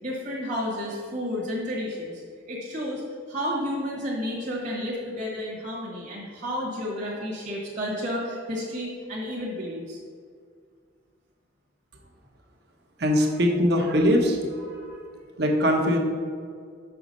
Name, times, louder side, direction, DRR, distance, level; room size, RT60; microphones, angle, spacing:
voice 1, 0.0-2.2 2.5-3.0 3.3-10.0 14.6-15.0, equal, 45° right, -5 dB, 1.3 m, -31 dB
voice 2, 13.0-14.4 15.4-16.0, equal, 60° right, 2 dB, 1.1 m, -21 dB
6.1 x 5.8 x 5.3 m, 2.1 s
head